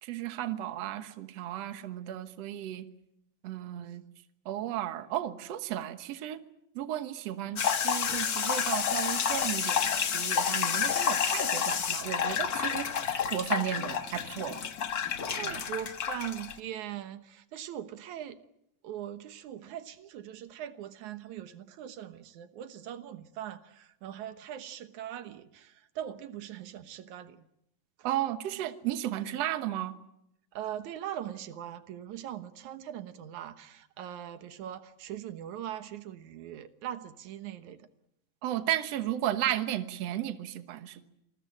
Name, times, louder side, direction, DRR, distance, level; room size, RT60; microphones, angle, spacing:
voice 1, 0.0-2.9 3.4-4.0 4.5-6.4 6.8-14.6 15.4-15.6 28.0-30.0 38.4-41.1, right 12 dB, 65° right, 10 dB, 2.2 m, -34 dB
sound 1, 7.6-16.6, left 7 dB, 50° left, 1.2 m, -30 dB
voice 2, 15.3-18.4 18.8-27.4 30.5-37.9, right 11 dB, 85° right, 11 dB, 2.6 m, -41 dB
27.5 x 20.0 x 8.8 m, 0.79 s
omnidirectional pair, 3.3 m